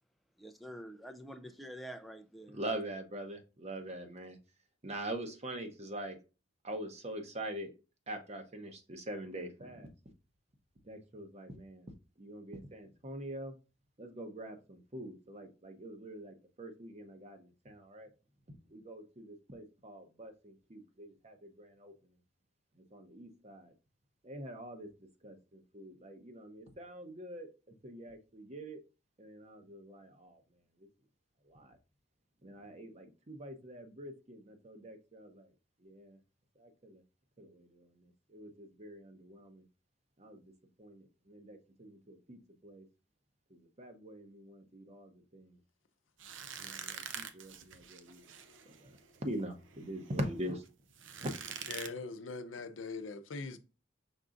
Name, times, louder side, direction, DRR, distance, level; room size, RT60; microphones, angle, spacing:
voice 1, 0.4-2.6, equal, ahead, 0.3 m, -47 dB
voice 2, 2.5-4.4 4.8-6.2 6.6-7.7 8.1-9.9 10.9-11.9 12.2-13.5 14.0-18.1 18.7-21.9 22.9-23.7 24.2-24.9 25.2-27.5 27.8-28.8 29.2-30.4 31.5-31.8 32.4-35.5 35.8-36.2 36.6-37.0 37.4-37.9 38.3-39.6 40.2-40.5 40.8-42.8 43.5-45.5 46.6-48.3 48.7-48.9 49.2-50.6 51.2-51.3, right 1 dB, 35° right, 0.8 m, -44 dB
sound 1, 46.2-51.9, right 7 dB, 75° right, 0.6 m, -46 dB
voice 3, 51.7-53.6, left 3 dB, 85° left, 0.6 m, -41 dB
5.4 x 3.7 x 2.5 m
head